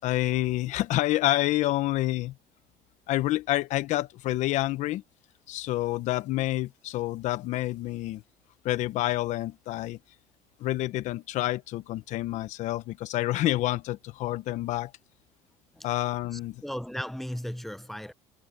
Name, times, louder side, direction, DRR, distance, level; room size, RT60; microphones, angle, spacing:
voice 1, 0.0-2.3 3.1-5.0 5.5-8.2 8.6-10.0 10.6-14.9 15.8-16.6, left 16 dB, 65° left, 0.9 m, -28 dB
voice 2, 16.3-18.1, equal, ahead, 0.5 m, -36 dB
cardioid pair, 130°, 14 cm